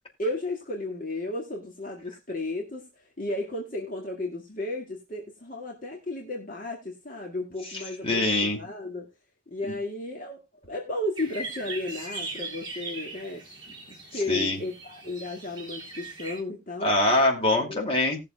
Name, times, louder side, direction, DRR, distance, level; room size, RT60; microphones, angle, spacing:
voice 1, 0.2-2.9 3.2-9.1 9.5-13.4 14.1-16.9 17.6-17.8, left 2 dB, 45° left, 0 dB, 2.0 m, -34 dB
voice 2, 8.0-8.6 14.3-14.6 16.8-18.2, left 2 dB, 30° left, 1 dB, 2.6 m, -23 dB
sound 1, 11.2-16.4, right 3 dB, 25° right, 3.5 m, -39 dB
19.5 x 6.7 x 2.3 m, 0.22 s
head